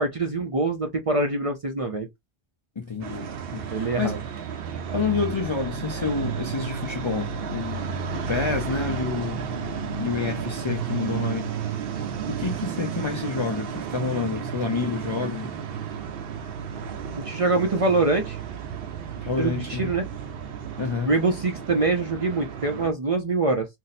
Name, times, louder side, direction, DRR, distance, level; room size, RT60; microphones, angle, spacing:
voice 1, 0.0-2.1 3.7-4.2 17.1-18.4 19.4-20.1 21.0-23.7, right 3 dB, 40° right, 0.5 m, -24 dB
voice 2, 2.8-4.2 4.9-7.8 8.3-9.4 10.0-11.5 12.3-15.6 19.2-19.9 20.8-21.1, left 4 dB, 40° left, 0.4 m, -28 dB
sound 1, 3.0-22.9, right 6 dB, 65° right, 0.8 m, -32 dB
2.6 x 2.1 x 4.0 m
omnidirectional pair, 1.1 m